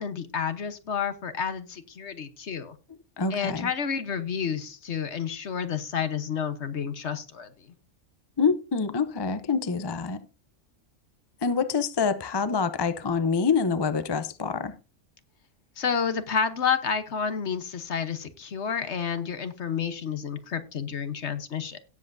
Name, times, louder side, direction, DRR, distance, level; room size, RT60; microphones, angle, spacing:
voice 1, 0.0-2.7 3.3-7.5 15.8-21.8, left 7 dB, 55° left, 1.3 m, -30 dB
voice 2, 3.2-3.7 8.4-10.2 11.4-14.7, left 5 dB, 35° left, 0.4 m, -26 dB
17.0 x 7.6 x 2.6 m
omnidirectional pair, 1.5 m